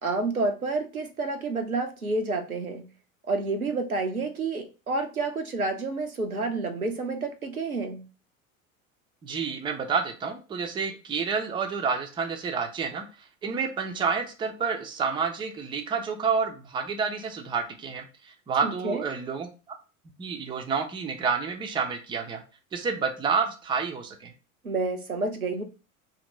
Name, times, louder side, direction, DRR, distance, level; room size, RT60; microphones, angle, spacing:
voice 1, 0.0-2.9 3.3-8.1 18.6-19.0 24.6-25.6, right 3 dB, 90° right, 6 dB, 0.6 m, -29 dB
voice 2, 9.2-13.1 13.4-19.5 20.2-22.4 22.7-24.3, right 5 dB, 10° right, 5 dB, 0.4 m, -29 dB
2.8 x 2.5 x 4.0 m, 0.33 s
figure-of-eight pair, 70°, 42 cm